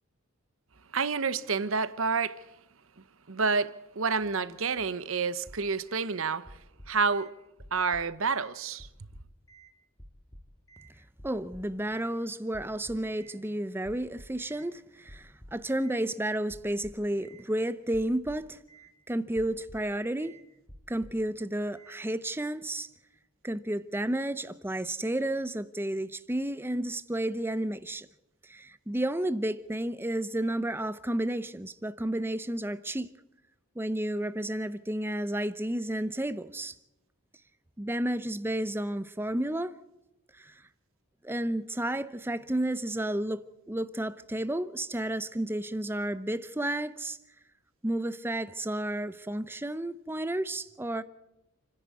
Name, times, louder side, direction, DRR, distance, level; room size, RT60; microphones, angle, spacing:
voice 1, 0.9-2.4 3.3-6.6 6.9-7.3 7.7-8.9, right 5 dB, 65° right, 0.9 m, -29 dB
sound 1, 5.4-6.1 6.4-7.3 7.6-8.5 8.8-9.7 10.0-10.9 11.2-12.1 12.5-13.4 13.8-14.7 15.1-16.0 16.5-17.4 17.9-18.9 19.3-19.9 20.2-20.4 20.7-21.3 21.8-22.0, right 1 dB, 15° left, 2.5 m, -51 dB
voice 2, 11.2-18.6 19.1-20.3 20.9-22.9 23.4-28.1 28.5-33.1 33.8-36.7 37.8-39.7 40.3-40.6 41.2-47.2 47.8-51.0, right 1 dB, 10° right, 0.7 m, -32 dB
29.5 x 10.5 x 8.3 m
head